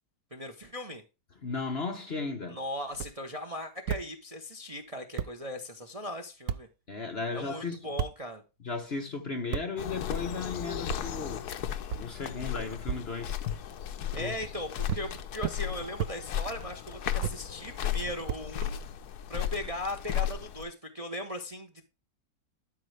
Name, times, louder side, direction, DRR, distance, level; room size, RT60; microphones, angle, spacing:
voice 1, 0.3-1.0 2.5-6.7 7.3-8.4 14.1-18.8 19.3-21.9, left 1 dB, 25° right, 0.9 m, -38 dB
voice 2, 1.4-2.6 6.9-7.8 8.6-11.4 12.0-13.4 14.2-14.3, left 4 dB, 40° left, 1.2 m, -35 dB
sound 1, 2.9-3.1 3.9-4.0 4.8-4.9 5.2-5.3 6.5-6.6 8.0-8.1 9.5-9.7 10.9-11.0 11.9-12.0 12.9-13.0 14.1-14.5 14.9-15.0 15.4-15.6 16.0-16.1 17.2-17.4 18.3-19.0, right 9 dB, 70° right, 0.8 m, -32 dB
sound 2, 9.8-20.6, left 10 dB, 70° left, 1.3 m, -35 dB
12.5 x 5.3 x 3.3 m
omnidirectional pair, 1.8 m